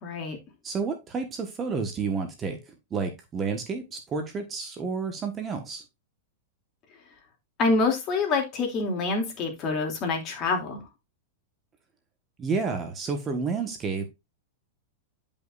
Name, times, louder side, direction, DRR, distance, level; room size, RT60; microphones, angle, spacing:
voice 1, 0.0-0.4 7.6-10.8, left 3 dB, 35° left, 2.9 m, -26 dB
voice 2, 0.6-5.8 12.4-14.1, right 5 dB, 20° right, 1.4 m, -30 dB
10.5 x 5.4 x 2.6 m
hypercardioid pair, 140°, 0 cm